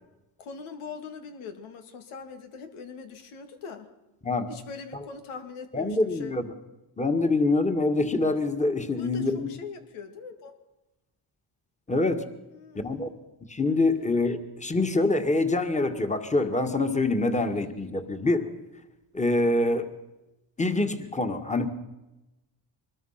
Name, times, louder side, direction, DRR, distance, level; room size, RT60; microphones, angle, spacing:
voice 1, 0.4-3.9 4.5-6.4 9.0-10.5 12.5-13.1, left 5 dB, 90° left, 6 dB, 2.5 m, -42 dB
voice 2, 5.7-6.4 7.0-9.5 11.9-12.2 12.8-13.1 13.5-18.5 19.1-19.9 20.6-21.7, left 2 dB, 15° left, 7 dB, 2.0 m, -25 dB
24.0 x 21.0 x 5.9 m, 1.0 s
cardioid pair, 90°, 48 cm